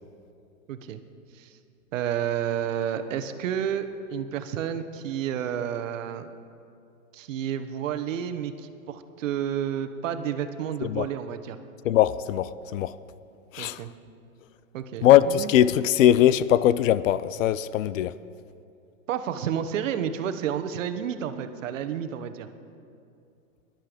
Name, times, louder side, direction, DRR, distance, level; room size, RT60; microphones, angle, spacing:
voice 1, 0.7-1.0 1.3-1.5 1.9-6.3 7.1-11.6 13.6-13.9 14.7-15.5 19.1-22.5, right 9 dB, 60° right, 1.1 m, -30 dB
voice 2, 11.8-12.9 13.5-13.8 15.0-18.2, left 12 dB, 65° left, 0.6 m, -21 dB
19.0 x 12.0 x 5.1 m
hypercardioid pair, 150°, 42 cm